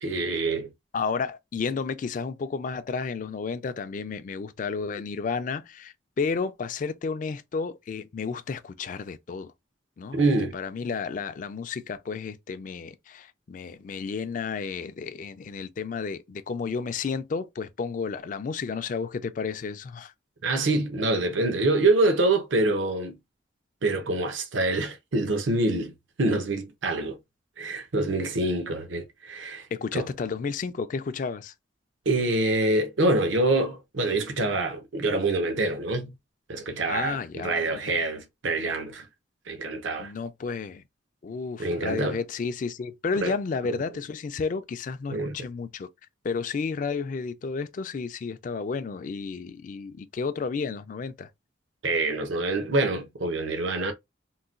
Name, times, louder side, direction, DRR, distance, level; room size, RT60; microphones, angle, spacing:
voice 1, 0.0-0.7 10.1-10.5 20.4-23.2 23.8-25.9 26.2-27.2 27.6-29.7 29.9-30.1 32.1-36.1 36.5-39.1 39.5-40.1 41.6-42.2 43.2-43.3 45.1-45.3 51.8-53.9, right 2 dB, 80° right, 0.7 m, -25 dB
voice 2, 0.9-9.5 10.0-20.1 29.7-31.5 36.9-38.0 40.0-40.8 41.2-45.9 46.2-51.3, left 5 dB, 40° left, 0.3 m, -32 dB
3.8 x 2.2 x 2.4 m
head